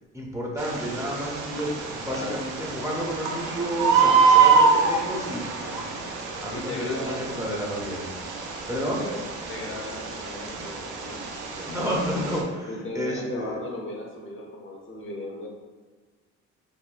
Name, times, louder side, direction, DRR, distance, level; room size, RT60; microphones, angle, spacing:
voice 1, 0.1-5.9 6.4-8.0 8.7-9.1 11.6-13.6, equal, 10° right, -3 dB, 0.5 m, -31 dB
Bird, 0.6-12.4, right 5 dB, 85° right, 0.5 m, -25 dB
voice 2, 6.5-7.3 9.0-11.3 12.7-15.5, left 2 dB, 45° left, -1 dB, 0.6 m, -36 dB
3.6 x 2.2 x 2.4 m, 1.3 s
cardioid pair, 90°, 30 cm